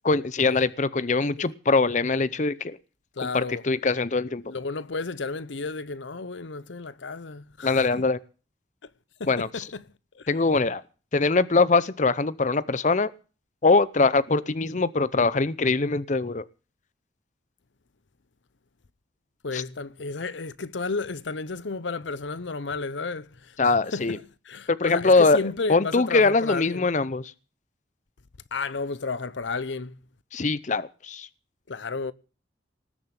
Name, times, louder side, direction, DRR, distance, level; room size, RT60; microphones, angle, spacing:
voice 1, 0.0-2.8 3.3-4.4 7.6-8.2 9.3-9.7 10.3-10.8 11.1-13.1 13.6-16.4 19.5-19.6 23.6-24.2 24.7-25.4 25.7-27.3 30.3-31.3, left 3 dB, 40° left, 0.7 m, -22 dB
voice 2, 3.2-3.6 4.4-8.0 9.2-9.9 10.2-10.3 19.4-26.9 28.5-30.0 31.7-32.1, left 4 dB, 80° left, 0.8 m, -32 dB
19.5 x 7.4 x 8.1 m
head